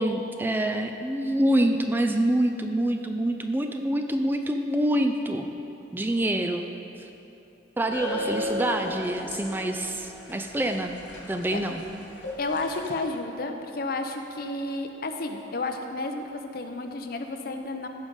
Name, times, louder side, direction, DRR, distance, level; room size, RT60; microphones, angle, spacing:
voice 1, 0.0-5.5 5.9-6.6 7.8-11.0 11.3-11.8, right 1 dB, 10° right, 5 dB, 0.4 m, -26 dB
sound 1, 7.9-12.9, left 1 dB, 85° left, 2.6 m, -35 dB
voice 2, 12.4-17.9, left 2 dB, 55° left, 5 dB, 0.7 m, -31 dB
15.0 x 5.2 x 5.3 m, 3.0 s
head